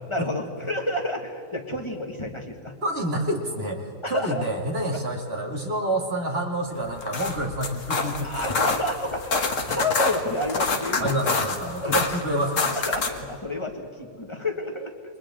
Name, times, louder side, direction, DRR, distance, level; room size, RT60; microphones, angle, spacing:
voice 1, 0.1-2.7 4.0-4.5 8.2-11.3 11.8-12.0 12.9-14.9, left 1 dB, 20° left, 2 dB, 1.9 m, -30 dB
voice 2, 2.8-8.4 11.0-12.8, right 1 dB, 40° right, 1 dB, 2.7 m, -28 dB
sound 1, 6.9-13.3, left 4 dB, 55° left, 1.7 m, -27 dB
29.0 x 24.0 x 3.8 m, 2.5 s
omnidirectional pair, 1.6 m